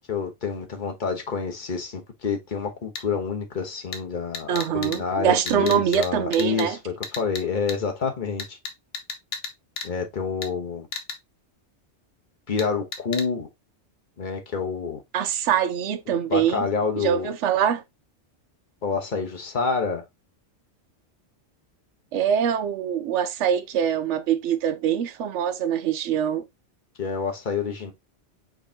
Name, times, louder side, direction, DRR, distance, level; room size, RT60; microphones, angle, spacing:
voice 1, 0.1-8.6 9.8-10.9 12.5-13.5 14.2-15.0 16.3-17.3 18.8-20.0 27.0-27.9, left 5 dB, 45° left, 1.2 m, -28 dB
sound 1, 3.0-3.1 3.9-4.0 4.3-5.0 5.5-6.1 6.3-6.6 7.0-7.4 7.7-7.8 8.4-9.5 9.8-9.9 10.4-10.5 10.9-11.2 12.6-12.7 12.9-13.2, left 5 dB, 85° left, 1.2 m, -32 dB
voice 2, 4.5-6.8 15.1-16.7 17.0-17.8 22.1-26.4, right 9 dB, 90° right, 0.9 m, -24 dB
4.6 x 3.7 x 2.8 m
omnidirectional pair, 1.2 m